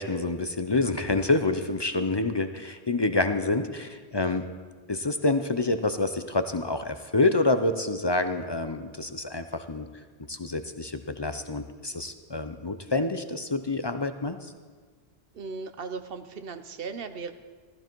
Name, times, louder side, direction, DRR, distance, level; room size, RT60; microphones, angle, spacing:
voice 1, 0.0-4.4 4.9-9.9 10.3-14.4, left 2 dB, 35° left, 9 dB, 0.5 m, -27 dB
voice 2, 15.3-17.3, right 4 dB, 65° right, 9 dB, 1.0 m, -37 dB
14.5 x 14.0 x 4.6 m, 1.5 s
omnidirectional pair, 1.1 m